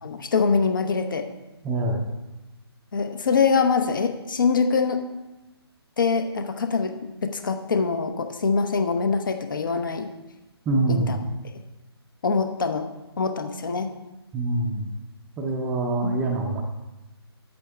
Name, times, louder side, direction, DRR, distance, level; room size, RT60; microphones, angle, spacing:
voice 1, 0.0-1.3 2.9-5.0 6.0-6.9 7.2-10.1 10.9-11.2 12.2-12.9 13.2-13.9 16.0-16.2, left 5 dB, 50° left, 7 dB, 0.9 m, -24 dB
voice 2, 1.6-2.1 10.7-11.2 14.3-14.9 15.4-16.6, right 2 dB, 10° right, 2 dB, 0.6 m, -25 dB
8.4 x 8.3 x 3.4 m, 1.0 s
figure-of-eight pair, 140°, 14 cm